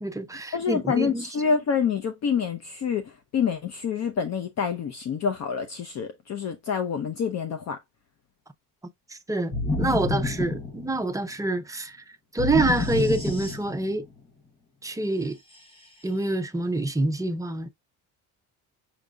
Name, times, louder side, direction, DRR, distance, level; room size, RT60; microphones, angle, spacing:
voice 1, 0.0-1.3 9.1-12.0 12.3-14.0 14.8-15.4 16.0-17.7, right 2 dB, 10° right, 0.5 m, -27 dB
voice 2, 0.5-7.8, left 6 dB, 45° left, 0.7 m, -27 dB
sound 1, 9.5-11.3 12.4-14.0, left 2 dB, 15° left, 0.9 m, -28 dB
6.0 x 3.8 x 2.3 m
cardioid pair, 140°, 36 cm